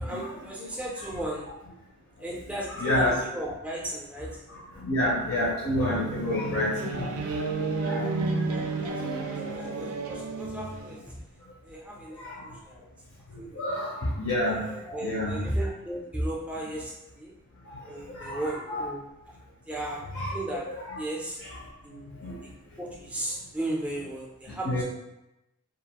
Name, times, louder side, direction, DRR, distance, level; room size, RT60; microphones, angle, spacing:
voice 1, 0.0-1.5 2.2-4.4 8.4-11.2 11.6-12.9 13.4-13.6 14.5-17.3 17.8-19.1 19.7-20.7 21.0-21.4 21.8-22.3 22.8-24.8, right 1 dB, 5° right, -3 dB, 0.4 m, -35 dB
voice 2, 2.7-3.2 4.8-7.1 7.7-8.0 12.2-12.3 13.6-13.9 14.2-14.6 15.0-15.4 18.1-18.8 20.1-20.4 20.9-21.0 22.2-22.4 24.6-24.8, left 1 dB, 70° left, -6 dB, 0.6 m, -28 dB
sound 1, 5.8-11.0, right 3 dB, 90° right, 0.4 m, -31 dB
2.5 x 2.4 x 2.8 m, 0.90 s
head